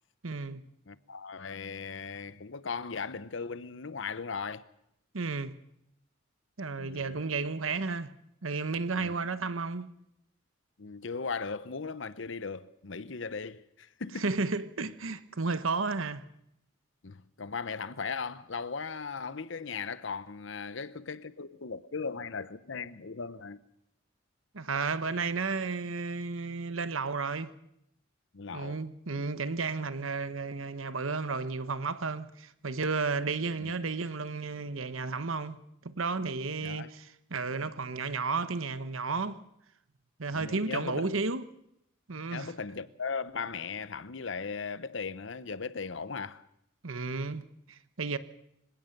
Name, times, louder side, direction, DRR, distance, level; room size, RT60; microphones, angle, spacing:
voice 1, 0.2-0.6 5.1-5.6 6.6-8.1 8.4-9.9 14.2-16.3 24.5-27.5 28.5-39.4 40.2-41.5 42.1-42.5 46.8-48.2, right 4 dB, 85° right, 1.1 m, -33 dB
voice 2, 0.9-4.6 6.8-7.2 8.9-9.1 10.8-14.3 17.0-23.6 28.3-29.2 33.6-33.7 36.6-36.9 40.3-41.1 42.3-46.5, left 5 dB, 70° left, 0.8 m, -38 dB
25.5 x 17.0 x 6.7 m
head